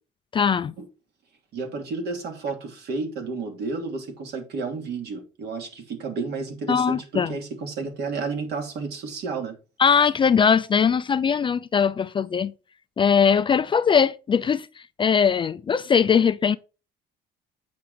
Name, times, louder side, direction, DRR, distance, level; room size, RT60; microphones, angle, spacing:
voice 1, 0.3-0.7 6.7-7.4 9.8-12.5 13.0-14.7 15.0-16.6, left 6 dB, 25° left, 0.4 m, -20 dB
voice 2, 1.5-9.6, right 4 dB, 60° right, 3.0 m, -31 dB
8.5 x 6.1 x 4.4 m
cardioid pair, 135°, 19 cm